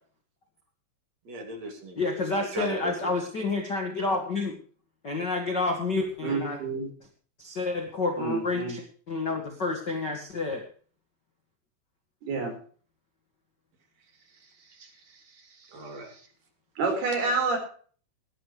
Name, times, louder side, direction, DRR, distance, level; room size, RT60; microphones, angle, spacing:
voice 1, 1.3-2.0 2.3-3.1 14.8-14.9 15.6-16.2, right 2 dB, 40° right, 4 dB, 3.5 m, -38 dB
voice 2, 1.9-4.6 5.0-6.6 7.4-10.6, left 3 dB, 75° left, 2 dB, 1.0 m, -29 dB
voice 3, 6.2-6.9 8.2-8.8 12.2-12.5 16.8-17.6, right 4 dB, 55° right, 4 dB, 6.1 m, -28 dB
19.5 x 11.5 x 3.2 m, 0.44 s
omnidirectional pair, 5.6 m